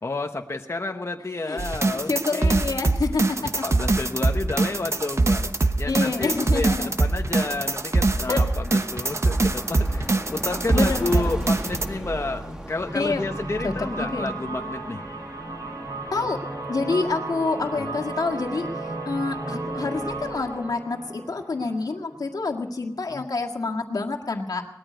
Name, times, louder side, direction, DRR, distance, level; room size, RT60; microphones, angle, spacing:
voice 1, 0.0-2.6 3.6-5.4 5.7-15.0 17.7-18.0 23.1-23.2, left 2 dB, 45° left, 3 dB, 1.1 m, -30 dB
sound 1, 1.6-11.9, right 2 dB, 50° right, 1.1 m, -23 dB
voice 2, 1.9-3.7 5.9-6.9 8.3-8.5 10.7-11.3 12.9-13.3 13.6-14.3 16.1-16.4 16.7-18.7 19.1-24.7, left 3 dB, 80° left, 2 dB, 1.9 m, -27 dB
sound 2, 3.3-20.6, right 1 dB, 10° right, 2.4 m, -40 dB
sound 3, 12.9-22.6, right 2 dB, 75° right, 4.7 m, -34 dB
20.0 x 13.5 x 5.2 m, 0.86 s
wide cardioid pair, 80°, 6 cm